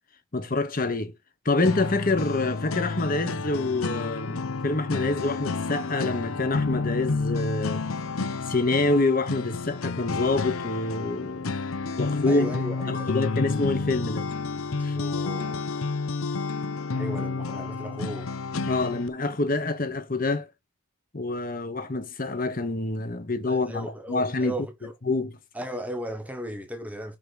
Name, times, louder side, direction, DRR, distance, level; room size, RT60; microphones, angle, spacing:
voice 1, 0.3-1.1 1.4-7.8 8.5-11.5 12.0-12.5 12.9-14.3 14.8-15.0 18.7-20.5 21.1-24.5 25.1-25.4, left 2 dB, 45° left, 1.2 m, -26 dB
sound 1, 1.6-19.1, left 4 dB, 85° left, 0.7 m, -30 dB
voice 2, 12.2-13.1 14.9-15.7 17.0-18.3 23.5-24.9 25.5-27.2, equal, 5° right, 1.3 m, -36 dB
6.0 x 5.1 x 6.4 m
head